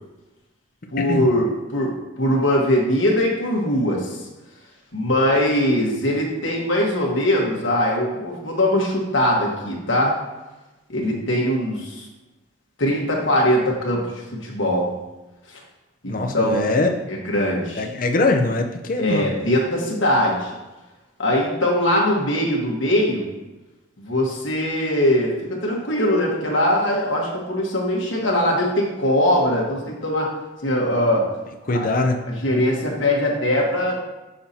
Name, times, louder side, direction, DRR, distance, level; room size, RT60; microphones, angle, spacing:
voice 1, 0.9-1.9 2.2-4.2 4.9-10.2 10.9-12.0 12.8-14.1 14.4-14.9 15.5-15.6 16.0-16.6 17.1-17.9 19.0-20.5 21.2-23.3 24.0-30.3 30.6-31.2 31.7-31.9 32.3-34.0, left 1 dB, 75° left, -2 dB, 1.4 m, -21 dB
voice 2, 16.1-16.9 17.8-19.3 31.7-32.2, left 2 dB, 45° left, 4 dB, 0.5 m, -22 dB
6.7 x 5.5 x 2.8 m, 1.1 s
head